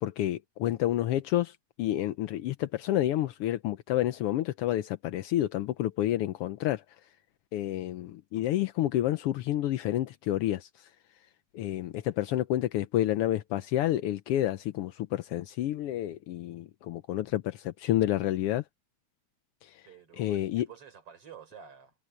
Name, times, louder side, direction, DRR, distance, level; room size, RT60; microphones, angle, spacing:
voice 1, 0.0-6.8 7.5-10.9 11.5-18.6 19.6-19.8 20.2-20.7, left 13 dB, 75° left, 1.4 m, -29 dB
voice 2, 19.8-21.9, right 8 dB, 50° right, 5.2 m, -50 dB
omnidirectional pair, 3.4 m